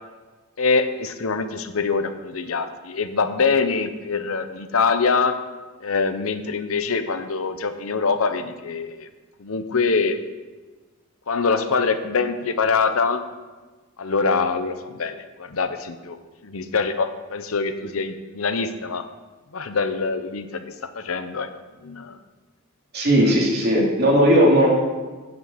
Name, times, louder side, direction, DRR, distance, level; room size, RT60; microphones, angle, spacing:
voice 1, 0.6-5.4 5.8-9.1 9.4-10.2 11.3-13.2 14.0-16.2 16.4-19.0 19.5-21.5 21.8-22.2, left 4 dB, 70° left, 10 dB, 0.8 m, -24 dB
voice 2, 22.9-24.7, equal, 50° right, -3 dB, 2.9 m, -17 dB
8.6 x 7.9 x 7.3 m, 1.3 s
head